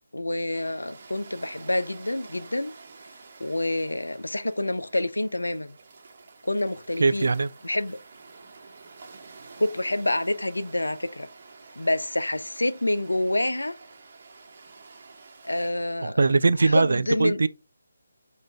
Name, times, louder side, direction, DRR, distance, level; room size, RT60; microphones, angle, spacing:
voice 1, 0.1-2.7 3.4-5.8 6.4-7.3 7.6-8.0 9.6-11.3 11.8-13.7 15.4-16.2 16.6-17.4, left 1 dB, 85° left, 0.5 m, -27 dB
sound 1, 0.5-15.7, right 4 dB, 45° right, 1.0 m, -49 dB
voice 2, 7.0-7.5 16.0-17.5, right 3 dB, 65° right, 0.3 m, -21 dB
5.8 x 2.6 x 3.3 m
figure-of-eight pair, 150°, 0 cm